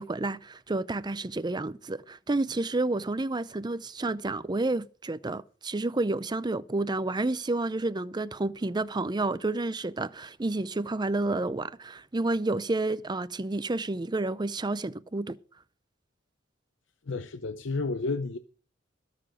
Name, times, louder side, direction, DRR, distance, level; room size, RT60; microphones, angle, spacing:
voice 1, 0.0-15.4, right 2 dB, 20° right, 0.6 m, -30 dB
voice 2, 17.1-18.4, left 3 dB, 70° left, 0.7 m, -31 dB
20.5 x 6.9 x 5.1 m
head